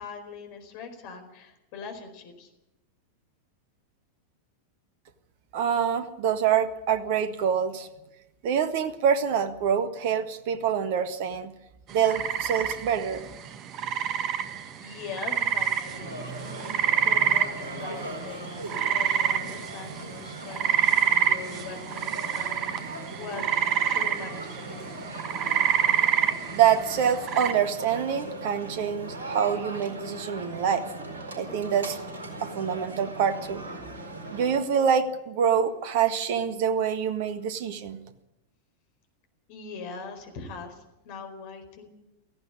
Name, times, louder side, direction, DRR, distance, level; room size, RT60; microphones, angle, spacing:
voice 1, 0.0-2.5 14.8-22.8 23.2-23.4 23.9-24.9 39.5-41.9, left 5 dB, 45° left, 6 dB, 4.5 m, -41 dB
voice 2, 5.5-7.9 8.4-11.5 11.9-13.3 26.5-30.9 31.4-32.0 32.4-33.6 34.3-38.0, right 8 dB, 50° right, 11 dB, 1.6 m, -26 dB
sound 1, 11.9-27.5, right 9 dB, 35° right, 1.5 m, -27 dB
sound 2, 15.8-34.6, right 1 dB, 65° right, 4.3 m, -39 dB
17.5 x 15.0 x 9.8 m, 0.92 s
figure-of-eight pair, 90°, 0 cm